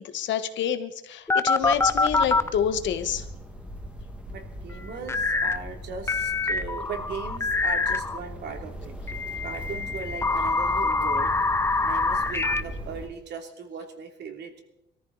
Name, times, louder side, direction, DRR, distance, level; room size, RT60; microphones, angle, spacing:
voice 1, 0.0-3.2, left 9 dB, 80° left, 9 dB, 1.4 m, -28 dB
sound 1, 1.3-2.5 5.1-5.6 6.1-8.2 9.1-12.6, left 3 dB, 15° left, 0.6 m, -25 dB
sound 2, 1.6-13.1, equal, 5° right, 1.9 m, -39 dB
voice 2, 4.3-8.9 9.4-11.3 11.8-14.6, right 5 dB, 65° right, 3 dB, 3.0 m, -38 dB
23.0 x 14.0 x 4.1 m, 0.88 s
cardioid pair, 160°, 19 cm